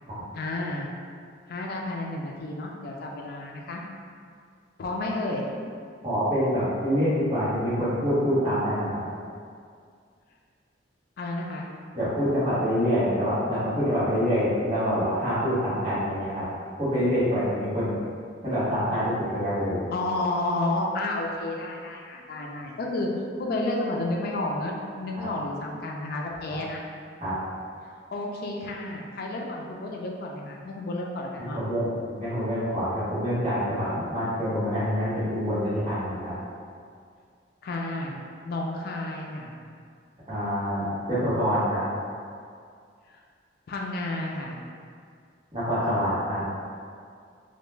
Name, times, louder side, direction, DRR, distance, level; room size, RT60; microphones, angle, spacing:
voice 1, 0.3-0.9 1.5-3.8 4.8-5.5 11.2-11.7 19.9-23.1 23.4-26.8 28.1-31.6 37.6-38.1 38.4-39.5 43.7-44.6, left 2 dB, 55° left, -1 dB, 0.3 m, -31 dB
voice 2, 6.0-9.0 11.9-16.4 16.8-18.0 18.4-19.8 25.2-25.3 26.5-26.6 27.2-27.4 31.4-36.3 40.3-41.8 45.5-46.5, equal, 30° right, -12 dB, 0.9 m, -26 dB
2.2 x 2.1 x 3.1 m, 2.2 s
head